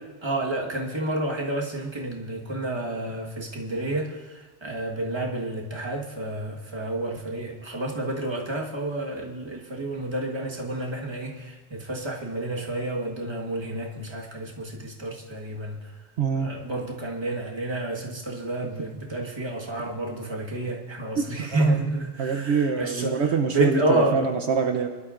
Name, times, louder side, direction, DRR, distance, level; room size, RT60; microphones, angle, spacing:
voice 1, 0.2-4.2 4.6-15.8 16.3-23.2 23.5-24.3, right 2 dB, 25° right, -1 dB, 1.4 m, -29 dB
voice 2, 16.2-16.5 21.2-21.8 22.2-24.9, right 5 dB, 70° right, 5 dB, 1.0 m, -25 dB
23.5 x 12.0 x 2.5 m, 1.3 s
omnidirectional pair, 1.2 m